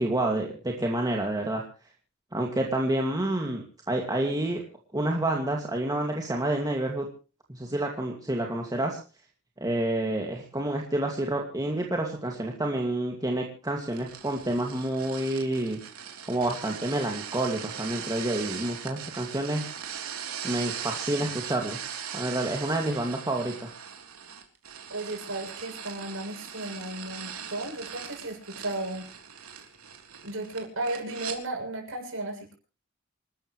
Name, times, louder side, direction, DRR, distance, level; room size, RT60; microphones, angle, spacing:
voice 1, 0.0-1.6 2.3-4.6 4.9-7.1 7.5-9.0 9.6-15.8 16.2-19.6 20.4-21.8 22.1-23.7, right 1 dB, 15° right, 1 dB, 2.3 m, -28 dB
sound 1, 13.9-31.4, right 8 dB, 85° right, 3.5 m, -40 dB
voice 2, 24.9-29.1 30.2-32.5, right 2 dB, 65° right, 1 dB, 7.6 m, -34 dB
28.0 x 13.0 x 3.2 m, 0.35 s
head